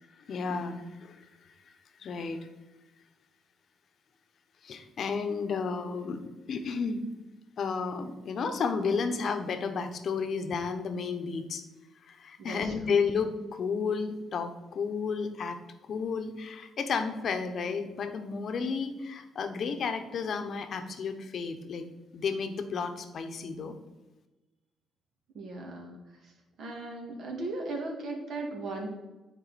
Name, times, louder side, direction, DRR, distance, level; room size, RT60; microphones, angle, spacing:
voice 1, 0.3-1.3 2.0-2.5 4.6-6.2 6.5-7.0 7.6-11.6 12.1-15.6 15.9-21.9 22.1-23.7, left 5 dB, 60° left, 8 dB, 0.8 m, -32 dB
voice 2, 12.4-13.0 25.3-26.0 26.2-26.3 26.6-28.9, right 2 dB, 70° right, 0 dB, 1.9 m, -37 dB
9.2 x 4.1 x 4.1 m, 1.1 s
cardioid pair, 90°, 0 cm